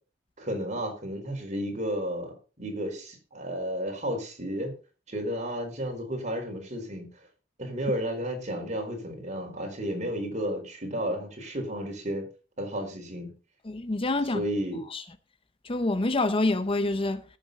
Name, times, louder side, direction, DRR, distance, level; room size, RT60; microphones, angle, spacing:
voice 1, 0.4-4.7 5.1-7.0 7.6-12.3 12.6-13.3 14.3-14.8, equal, 40° right, 4.6 m, -32 dB
voice 2, 13.7-14.4 14.9-15.0 15.6-17.2, left 2 dB, 30° left, 0.7 m, -26 dB
18.5 x 7.6 x 4.1 m
head